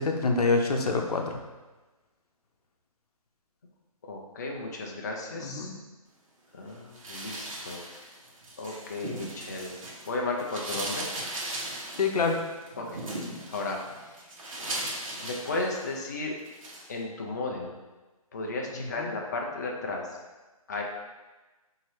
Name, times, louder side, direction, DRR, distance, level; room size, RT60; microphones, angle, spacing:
voice 1, 0.0-1.4 5.3-5.7 12.0-12.4 18.8-19.1, left 3 dB, 90° left, 2 dB, 0.7 m, -26 dB
voice 2, 4.0-5.7 6.5-7.8 8.6-9.7 10.0-11.1 12.8-13.0 13.5-13.8 14.1-14.3 15.2-16.3 16.9-17.7 18.3-20.2 20.7-20.8, left 2 dB, 30° left, 0 dB, 0.3 m, -34 dB
sound 1, 6.9-10.1 10.4-16.1 16.4-16.9, right 1 dB, 60° right, 1.1 m, -38 dB
4.5 x 2.7 x 3.0 m, 1.2 s
hypercardioid pair, 165°, 19 cm